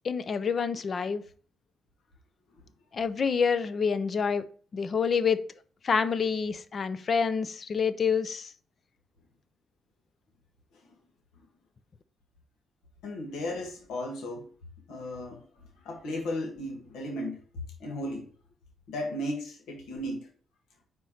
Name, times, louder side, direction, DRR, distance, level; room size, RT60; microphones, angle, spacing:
voice 1, 0.0-1.2 2.9-4.4 4.7-5.4 5.8-8.5, left 6 dB, 45° left, 0.7 m, -27 dB
voice 2, 13.0-14.5 14.9-17.4 17.8-18.3 18.9-20.3, left 1 dB, 85° left, 1.7 m, -35 dB
4.8 x 4.4 x 5.6 m
cardioid pair, 90°, 0 cm